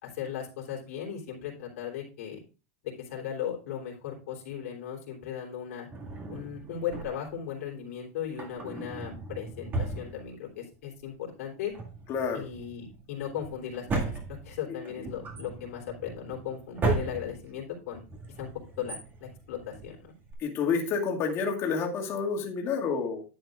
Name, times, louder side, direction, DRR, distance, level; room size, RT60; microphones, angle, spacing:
voice 1, 0.0-2.4 2.8-5.9 6.3-11.7 12.3-14.1 14.4-18.0 18.4-18.5 18.8-20.1, left 9 dB, 80° left, -2 dB, 3.4 m, -37 dB
Drawer open or close, 5.9-7.4 8.2-10.8 11.0-11.1 11.6-20.3, right 3 dB, 25° right, 2.0 m, -36 dB
voice 2, 12.1-12.5 20.4-23.2, left 5 dB, 35° left, 0 dB, 2.1 m, -29 dB
10.5 x 8.0 x 2.5 m, 0.34 s
supercardioid pair, 150°, 8 cm